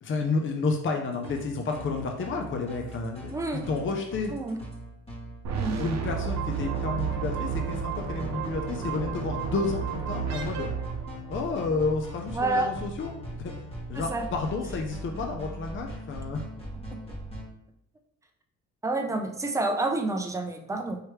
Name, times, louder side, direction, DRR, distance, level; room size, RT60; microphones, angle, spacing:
voice 1, 0.0-4.3 5.8-10.7 11.3-13.5 13.9-16.4, left 3 dB, 40° left, 3 dB, 0.6 m, -31 dB
sound 1, 1.1-17.5, right 1 dB, 20° left, 1.4 m, -40 dB
voice 2, 3.3-3.7 4.3-4.6 5.5-5.8 12.3-12.7 13.9-14.2 18.8-21.0, right 2 dB, 10° right, 4 dB, 0.6 m, -28 dB
sound 2, 5.4-11.6, right 6 dB, 60° right, 0.8 m, -32 dB
4.7 x 3.1 x 3.1 m, 0.77 s
cardioid pair, 90°, 30 cm